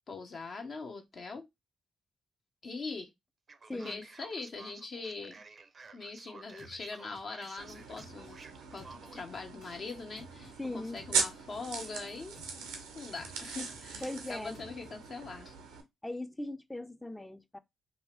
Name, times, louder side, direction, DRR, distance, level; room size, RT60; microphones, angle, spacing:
voice 1, 0.1-1.4 2.6-3.1 3.7-5.4 5.9-8.4 8.7-12.4 12.9-15.5, left 4 dB, 55° left, 0.8 m, -42 dB
Male speech man speaking, 3.5-9.3, right 4 dB, 50° right, 0.5 m, -53 dB
voice 2, 3.7-4.0 10.6-11.0 14.0-14.6 16.0-17.6, left 1 dB, 10° left, 0.5 m, -39 dB
sound 1, 6.6-8.4 8.8-10.6 11.0-12.8 13.2-15.0, equal, 80° left, 1.6 m, -57 dB
sound 2, 7.6-15.8, right 5 dB, 85° right, 0.6 m, -39 dB
2.7 x 2.4 x 3.3 m
hypercardioid pair, 40°, 0 cm